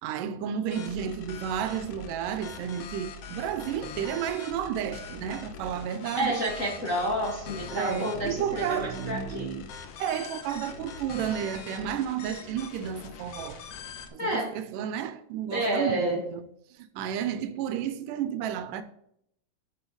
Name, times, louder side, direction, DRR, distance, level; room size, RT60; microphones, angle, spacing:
voice 1, 0.0-6.4 7.7-9.6 10.0-13.6 14.1-16.5 16.8-18.8, right 9 dB, 80° right, 2.1 m, -32 dB
sound 1, 0.7-14.1, left 5 dB, 75° left, 1.5 m, -43 dB
voice 2, 6.1-9.5 14.2-14.5 15.5-16.2, equal, 40° left, 1.2 m, -29 dB
10.0 x 6.3 x 4.8 m
omnidirectional pair, 3.9 m